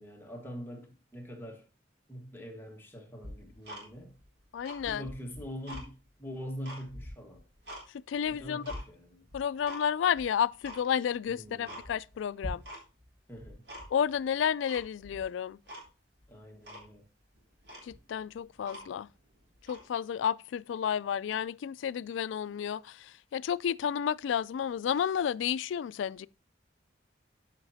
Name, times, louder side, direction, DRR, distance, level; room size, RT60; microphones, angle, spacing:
voice 1, 0.0-1.7 2.1-4.1 4.8-7.4 8.3-9.2 11.3-11.8 13.3-13.6 16.3-17.0, equal, 10° left, 1.4 m, -44 dB
Tick-tock, 3.2-4.2 4.6-5.9 6.3-7.9 8.2-8.8 9.3-9.8 10.1-10.2 10.6-10.8 11.2-11.3 11.6-12.2 12.4-13.1 13.3-14.1 14.7-15.2 15.7-15.9 16.2-16.3 16.6-16.9 17.4-17.5 17.6-19.1 19.6-19.9, equal, 65° right, 3.7 m, -44 dB
voice 2, 4.5-5.0 8.1-8.6 9.3-12.6 13.9-15.6 17.8-19.1 19.7-26.3, left 8 dB, 90° left, 0.3 m, -31 dB
12.5 x 5.8 x 2.7 m
head